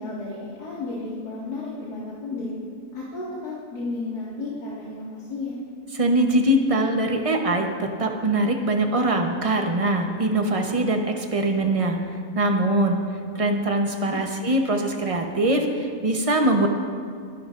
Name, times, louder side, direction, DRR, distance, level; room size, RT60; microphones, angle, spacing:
voice 1, 0.0-2.5 2.9-5.6 14.1-14.2, left 3 dB, 75° left, -8 dB, 2.5 m, -33 dB
voice 2, 5.9-12.0 12.3-13.0 13.3-16.7, right 1 dB, 25° right, 3 dB, 0.8 m, -22 dB
26.0 x 12.0 x 2.6 m, 2.3 s
omnidirectional pair, 1.7 m